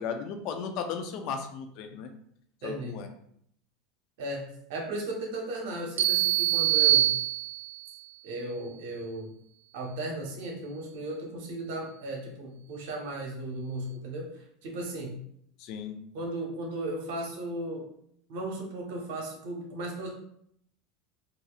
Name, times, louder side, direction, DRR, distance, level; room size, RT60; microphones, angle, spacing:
voice 1, 0.0-2.1 2.6-3.1 15.6-16.0, left 6 dB, 55° left, 6 dB, 0.5 m, -35 dB
voice 2, 2.6-3.0 4.2-7.2 8.2-9.3 9.7-15.2 16.1-17.9 18.3-20.1, right 1 dB, 70° right, 0 dB, 1.2 m, -36 dB
sound 1, 6.0-7.9, right 15 dB, 90° right, 0.4 m, -24 dB
4.0 x 2.6 x 2.4 m, 0.69 s
supercardioid pair, 120°, 0 cm